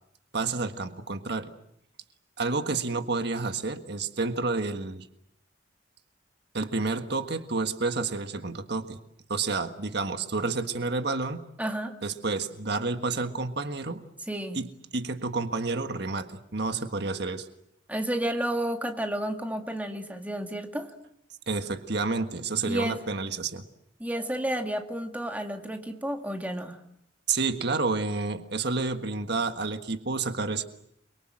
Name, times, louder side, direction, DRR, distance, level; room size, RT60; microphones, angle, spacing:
voice 1, 0.3-1.5 2.4-5.1 6.5-9.0 9.3-11.4 12.0-14.0 14.5-17.5 21.5-23.6 27.3-30.6, right 3 dB, 55° right, 7 dB, 1.6 m, -30 dB
voice 2, 11.6-12.0 14.3-14.6 17.9-20.9 22.6-23.0 24.0-26.8, right 1 dB, 10° right, 4 dB, 2.2 m, -31 dB
29.5 x 23.5 x 7.7 m, 0.74 s
head